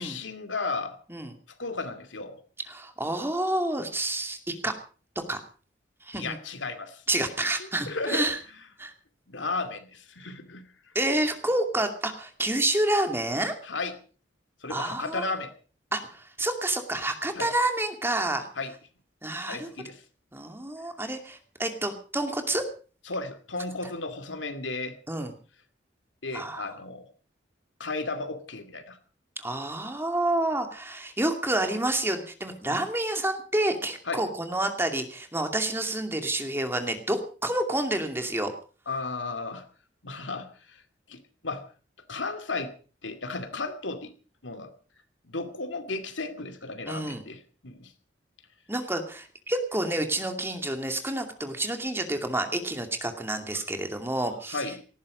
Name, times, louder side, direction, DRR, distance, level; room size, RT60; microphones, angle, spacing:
voice 1, 0.0-1.0 1.6-2.4 6.1-7.0 7.6-8.3 9.3-10.7 13.6-13.9 14.6-15.5 17.4-17.5 18.6-18.7 19.5-20.0 23.1-25.0 26.2-27.1 27.8-29.0 32.7-32.8 34.1-34.2 38.9-39.6 40.0-40.8 41.1-41.6 42.1-42.7 43.0-44.1 44.4-44.7 45.2-47.9 54.5-54.8, left 3 dB, 85° left, 8 dB, 2.4 m, -34 dB
voice 2, 2.7-4.4 4.6-4.7 5.3-5.4 6.0-6.4 7.1-8.4 8.8-8.9 10.9-13.5 14.7-15.2 15.9-18.5 19.2-19.7 20.3-22.6 25.1-25.3 26.3-26.7 29.4-38.5 46.9-47.2 48.7-54.6, right 1 dB, 15° right, 6 dB, 2.4 m, -29 dB
18.5 x 15.0 x 5.2 m, 0.39 s
head